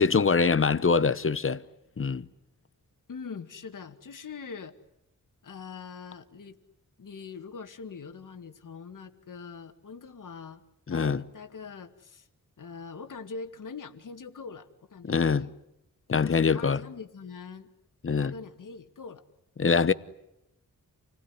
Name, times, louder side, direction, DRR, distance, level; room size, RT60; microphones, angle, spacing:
voice 1, 0.0-1.6 2.0-2.2 10.9-11.2 15.0-15.5 16.1-16.8 18.0-18.3 19.6-19.9, left 5 dB, 40° left, 0.9 m, -24 dB
voice 2, 3.1-4.7 5.4-6.6 7.0-10.6 10.9-12.3 12.6-15.5 16.1-17.7 18.2-19.2, left 5 dB, 70° left, 2.1 m, -43 dB
28.5 x 20.5 x 9.8 m
wide cardioid pair, 150°, 33 cm